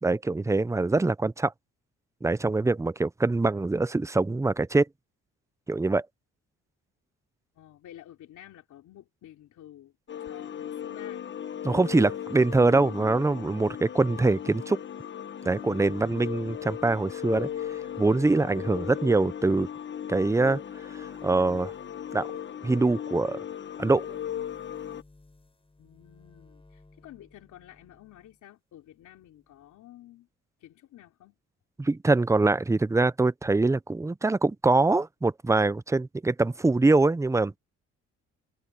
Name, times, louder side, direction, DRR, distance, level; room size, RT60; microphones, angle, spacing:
voice 1, 0.0-1.5 2.2-4.9 5.7-6.1 11.6-14.8 15.4-17.5 18.0-19.7 20.1-20.6 21.2-21.7 22.1-22.3 22.6-23.4 23.8-24.1 31.8-37.6, right 3 dB, 10° right, 0.6 m, -24 dB
voice 2, 7.5-9.9 10.2-11.2 25.8-30.3 30.6-31.3, left 12 dB, 75° left, 3.2 m, -51 dB
sound 1, 10.1-25.0, left 9 dB, 40° left, 1.0 m, -37 dB
sound 2, 15.5-28.4 28.8-29.8, left 2 dB, 20° left, 7.9 m, -60 dB
cardioid pair, 90°, 30 cm